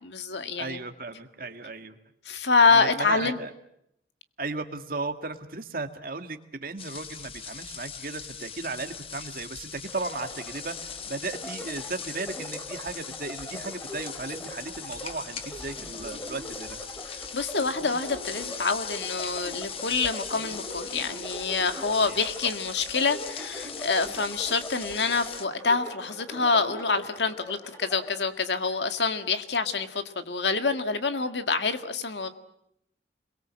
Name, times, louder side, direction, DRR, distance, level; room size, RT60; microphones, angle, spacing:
voice 1, 0.0-0.8 2.3-3.4 17.1-32.3, left 4 dB, 80° left, 8 dB, 1.9 m, -26 dB
voice 2, 0.6-2.0 2.7-3.5 4.4-16.8 21.9-22.2, right 3 dB, 55° right, 6 dB, 1.9 m, -36 dB
sound 1, 6.8-25.5, left 6 dB, 30° left, 1.4 m, -40 dB
sound 2, 9.9-28.2, equal, 15° left, 3.1 m, -42 dB
28.5 x 22.0 x 7.6 m, 0.77 s
head